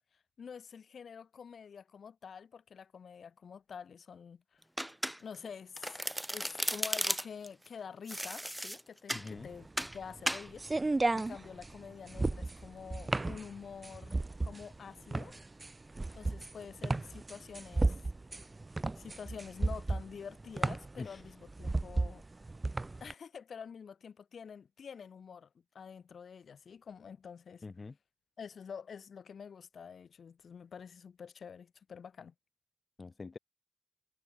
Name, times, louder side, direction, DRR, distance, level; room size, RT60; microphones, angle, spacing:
voice 1, 0.1-4.6 5.2-6.0 6.3-15.3 16.1-18.0 19.0-22.2 23.0-25.5 25.7-27.9 28.4-32.3, left 6 dB, 75° left, 2.6 m, -48 dB
Domestic sounds home sounds, 4.8-5.5 5.8-7.5 8.1-9.3 9.8-10.0 10.3-10.5, equal, 5° right, 0.8 m, -35 dB
voice 2, 9.1-9.5 21.0-21.2 27.6-27.9 33.0-33.4, left 4 dB, 45° left, 0.7 m, -44 dB
sound 1, 9.2-23.1, right 2 dB, 30° right, 0.5 m, -34 dB
cardioid pair, 55°, 0 cm